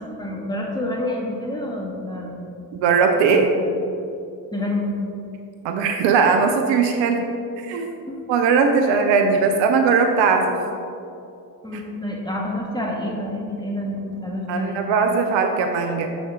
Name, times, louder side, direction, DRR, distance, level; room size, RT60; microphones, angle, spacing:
voice 1, 0.0-2.5 3.3-3.7 4.5-4.9 8.1-8.2 8.8-9.0 11.6-14.8, left 1 dB, 10° left, -2 dB, 1.7 m, -28 dB
voice 2, 2.7-3.5 5.6-7.2 7.6-7.9 8.3-10.6 11.7-11.8 14.5-16.1, right 5 dB, 65° right, 5 dB, 0.7 m, -19 dB
7.0 x 6.1 x 3.7 m, 2.6 s
hypercardioid pair, 50°, 49 cm